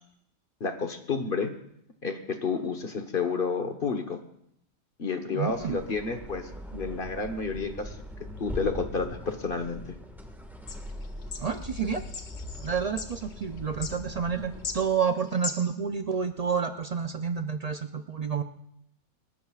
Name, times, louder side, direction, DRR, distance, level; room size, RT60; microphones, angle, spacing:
voice 1, 0.6-1.5 2.0-4.2 5.0-8.0 8.4-10.0, left 4 dB, 45° left, 7 dB, 1.3 m, -30 dB
voice 2, 5.3-5.8 11.4-12.0 12.6-18.4, right 6 dB, 65° right, 7 dB, 0.3 m, -29 dB
sound 1, 5.5-15.0, left 1 dB, ahead, 1.5 m, -41 dB
sound 2, 10.7-15.7, left 5 dB, 65° left, 1.5 m, -40 dB
29.0 x 14.0 x 2.4 m, 0.74 s
omnidirectional pair, 1.4 m